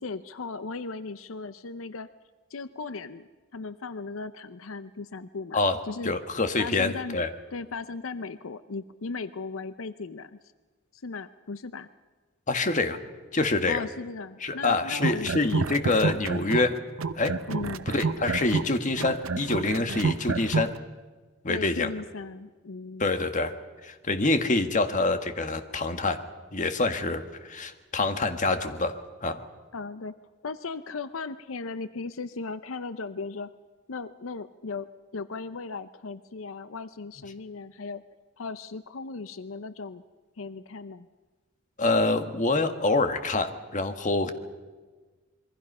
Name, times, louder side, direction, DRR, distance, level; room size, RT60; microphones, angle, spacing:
voice 1, 0.0-2.1 2.5-5.6 5.9-6.1 6.6-7.2 7.5-10.4 10.9-11.9 13.7-15.3 17.5-17.9 21.5-23.2 29.7-30.1 30.4-33.5 33.9-34.9 35.1-38.0 38.4-40.0 40.4-41.1, left 4 dB, 85° left, 13 dB, 0.7 m, -37 dB
voice 2, 6.0-7.3 12.5-13.0 13.3-13.8 14.4-16.8 17.2-17.4 17.9-20.7 21.4-21.9 23.0-23.5 23.8-26.2 26.5-29.4 41.8-44.3, left 3 dB, 40° left, 8 dB, 1.6 m, -26 dB
sound 1, 14.9-16.7 17.0-20.7, right 4 dB, 85° right, 0.8 m, -29 dB
27.0 x 22.5 x 5.6 m, 1.3 s
head